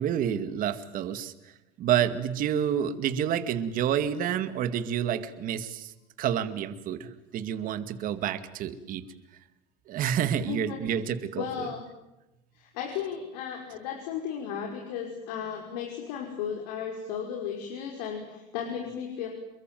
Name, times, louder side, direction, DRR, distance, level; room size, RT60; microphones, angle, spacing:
voice 1, 0.0-1.3 1.8-5.9 6.2-7.1 7.3-9.0 9.9-11.5, right 9 dB, 40° right, 11 dB, 2.1 m, -28 dB
voice 2, 10.5-10.8 11.3-11.8 12.5-19.3, left 8 dB, 85° left, 1 dB, 5.7 m, -35 dB
28.5 x 22.5 x 9.3 m, 0.96 s
cardioid pair, 150°, 21 cm